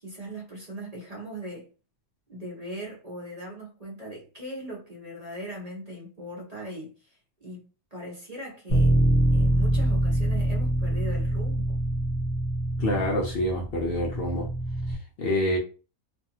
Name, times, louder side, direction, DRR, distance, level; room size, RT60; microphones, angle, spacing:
voice 1, 0.0-1.7 2.3-8.9 9.3-11.8, right 1 dB, 40° right, 0.6 m, -39 dB
Bass guitar, 8.7-14.9, right 1 dB, 30° left, 1.0 m, -25 dB
voice 2, 12.8-14.5 14.9-15.6, left 1 dB, 60° left, 0.6 m, -27 dB
2.6 x 2.4 x 2.9 m
omnidirectional pair, 1.5 m